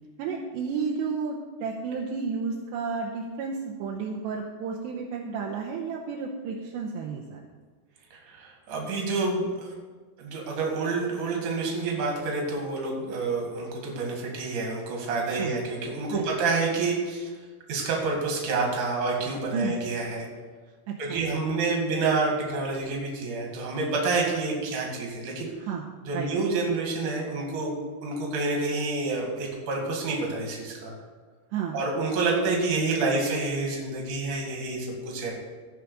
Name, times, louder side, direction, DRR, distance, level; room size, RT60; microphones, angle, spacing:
voice 1, 0.2-7.4 15.4-15.5 16.1-16.3 19.5-19.7 20.9-21.2 25.6-25.8 26.1-26.3 31.5-31.8, right 5 dB, 80° right, -2 dB, 2.7 m, -32 dB
voice 2, 8.1-9.7 10.2-17.3 17.7-20.3 21.0-25.5 26.0-30.9 31.7-35.4, right 3 dB, 50° right, -1 dB, 3.0 m, -28 dB
16.5 x 6.1 x 4.9 m, 1.4 s
omnidirectional pair, 5.7 m